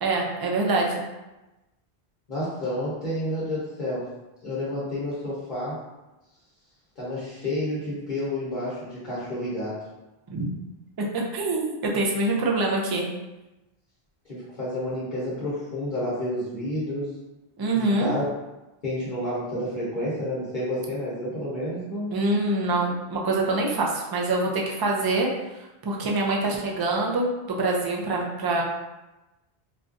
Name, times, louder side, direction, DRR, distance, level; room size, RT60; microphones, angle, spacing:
voice 1, 0.0-1.0 10.3-10.5 11.1-13.1 17.6-18.1 22.1-25.3 25.8-28.6, right 2 dB, 40° right, -1 dB, 0.3 m, -25 dB
voice 2, 2.3-4.0 4.4-5.8 7.0-9.8 14.3-17.1 17.7-18.2 18.8-22.1, left 1 dB, 50° left, -9 dB, 1.0 m, -30 dB
4.0 x 2.4 x 2.5 m, 1.0 s
omnidirectional pair, 1.0 m